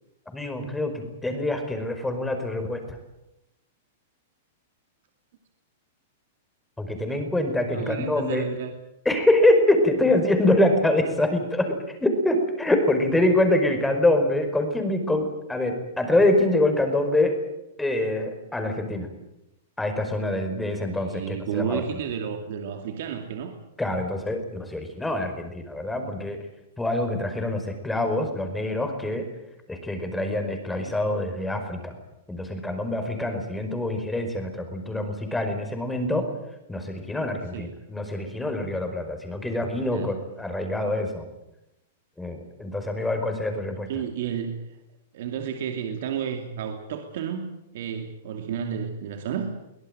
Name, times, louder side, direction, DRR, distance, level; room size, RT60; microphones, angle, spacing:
voice 1, 0.3-3.0 6.8-8.5 9.0-11.8 12.0-17.4 17.8-19.1 19.8-21.8 23.8-26.4 26.8-29.3 29.7-32.0 32.3-36.3 36.7-41.3 42.2-43.9, left 1 dB, 5° left, 6 dB, 5.1 m, -25 dB
voice 2, 7.7-8.7 21.0-23.6 30.7-31.0 37.5-37.7 39.9-40.1 43.9-44.8 45.1-49.5, right 7 dB, 65° right, 5 dB, 2.6 m, -32 dB
23.5 x 18.0 x 9.1 m, 0.90 s
hypercardioid pair, 120°, 0 cm